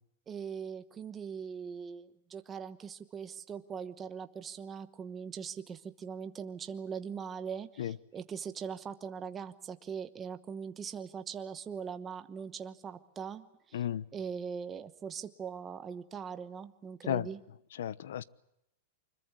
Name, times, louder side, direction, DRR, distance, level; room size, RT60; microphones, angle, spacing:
voice 1, 0.3-13.8 14.1-17.4, right 6 dB, 15° right, 10 dB, 1.0 m, -41 dB
voice 2, 13.7-14.0 17.1-17.3 17.8-18.2, left 10 dB, 70° left, 20 dB, 1.0 m, -33 dB
25.0 x 22.0 x 8.1 m, 0.79 s
supercardioid pair, 175°, 0 cm